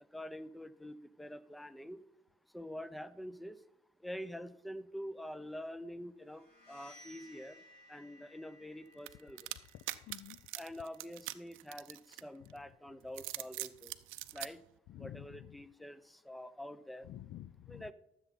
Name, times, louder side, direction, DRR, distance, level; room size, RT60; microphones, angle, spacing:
voice 1, 0.1-2.0 2.5-3.6 4.0-7.6 7.9-9.5 10.6-14.0 14.3-14.6 15.0-17.1 17.7-17.9, equal, ahead, 15 dB, 0.5 m, -46 dB
sound 1, 6.3-11.9, left 1 dB, 50° left, 3.8 m, -61 dB
sound 2, 9.1-12.5 13.0-14.5, right 17 dB, 90° right, 0.5 m, -43 dB
voice 2, 9.7-10.4 12.4-12.5 14.9-15.6 17.0-17.9, left 13 dB, 65° left, 19 dB, 0.4 m, -50 dB
13.5 x 7.2 x 4.1 m, 0.82 s
cardioid pair, 90°, 20 cm